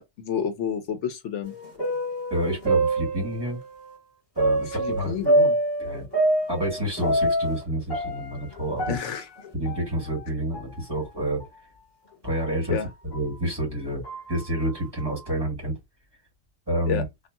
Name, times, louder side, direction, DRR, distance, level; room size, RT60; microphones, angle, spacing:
voice 1, 0.0-1.5 4.8-5.6 8.9-9.3 12.7-12.9 16.9-17.0, left 7 dB, 75° left, 1.0 m, -29 dB
sound 1, 1.4-3.6 4.4-7.6 7.9-10.3 10.5-10.6 11.4-11.5 12.3-12.5 13.1-13.2 14.0-14.3, right 1 dB, 40° left, 1.8 m, -26 dB
voice 2, 2.3-3.6 4.3-5.2 5.8-6.1 6.5-9.0 9.5-11.4 12.2-12.8 13.0-14.0 14.3-15.7 16.7-17.0, right 1 dB, 20° right, 1.7 m, -28 dB
2.6 x 2.5 x 2.3 m
omnidirectional pair, 1.2 m